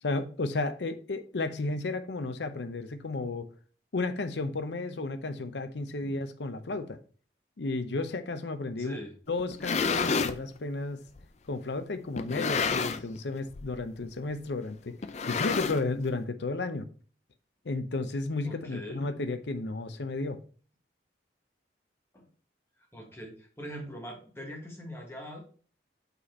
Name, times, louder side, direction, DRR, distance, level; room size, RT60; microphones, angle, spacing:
voice 1, 0.0-3.5 3.9-7.0 7.6-9.0 9.3-11.0 11.5-15.0 15.3-16.9 17.6-20.4, left 3 dB, 75° left, 0.7 m, -33 dB
voice 2, 8.8-9.1 18.4-19.1 22.1-22.3 22.9-25.4, equal, 15° left, 1.4 m, -42 dB
sound 1, 9.4-10.4 11.2-11.3 12.2-13.2 13.5-13.8 14.0-14.1 15.0-16.1, left 5 dB, 40° left, 0.4 m, -29 dB
5.5 x 4.2 x 4.3 m
head